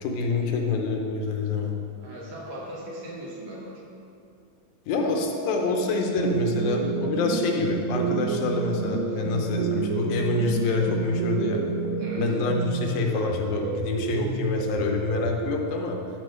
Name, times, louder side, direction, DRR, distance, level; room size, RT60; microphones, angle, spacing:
voice 1, 0.0-1.8 4.9-11.6 12.2-16.0, left 3 dB, 80° left, 2 dB, 2.7 m, -26 dB
voice 2, 2.0-3.9 9.1-9.2 12.0-12.3, right 1 dB, 60° right, -4 dB, 2.4 m, -39 dB
sound 1, 6.1-15.5, right 5 dB, 90° right, 1.5 m, -29 dB
11.5 x 4.8 x 6.4 m, 2.5 s
omnidirectional pair, 4.1 m